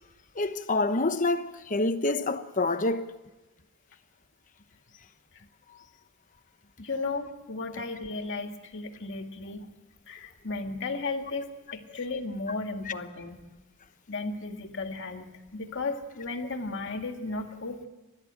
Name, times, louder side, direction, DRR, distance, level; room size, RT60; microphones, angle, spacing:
voice 1, 0.4-3.0 12.9-13.0, left 2 dB, 35° left, 1.0 m, -27 dB
voice 2, 6.8-9.7 10.1-13.5 14.1-17.9, left 3 dB, 55° left, 2.1 m, -35 dB
29.5 x 13.5 x 8.9 m
head